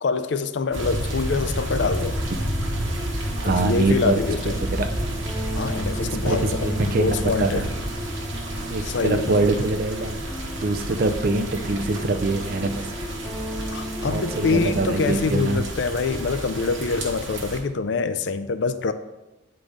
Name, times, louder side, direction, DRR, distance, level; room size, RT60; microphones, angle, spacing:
voice 1, 0.0-2.2 3.4-4.6 5.6-7.7 8.8-9.4 13.7-18.9, left 4 dB, 60° left, 11 dB, 0.4 m, -25 dB
sound 1, 0.7-17.6, right 1 dB, 75° right, 1.1 m, -30 dB
sound 2, 1.7-15.3, equal, 10° right, 1.0 m, -36 dB
voice 2, 3.4-4.2 4.7-4.9 6.0-7.7 8.7-10.2 10.6-12.9 14.0-15.6, right 2 dB, 45° right, 7 dB, 0.5 m, -24 dB
8.4 x 3.9 x 5.0 m, 1.0 s
head